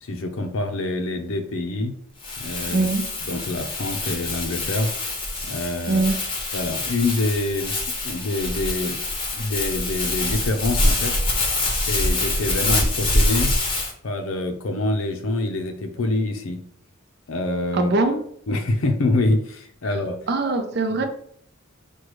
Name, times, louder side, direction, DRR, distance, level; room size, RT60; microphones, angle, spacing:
voice 1, 0.0-1.9 2.4-2.9 3.3-4.9 5.4-6.0 6.5-7.7 8.0-9.0 9.3-11.2 11.7-13.5 14.0-16.6 17.3-17.9 18.5-20.2, left 2 dB, 75° left, 5 dB, 0.6 m, -25 dB
Crumpling crinkling, 2.2-13.9, left 2 dB, 25° left, 0.7 m, -25 dB
voice 2, 2.7-3.1 5.9-6.2 17.7-18.2 19.8-20.0 20.3-21.0, right 3 dB, 55° right, 7 dB, 0.6 m, -22 dB
6.2 x 2.3 x 3.1 m, 0.63 s
head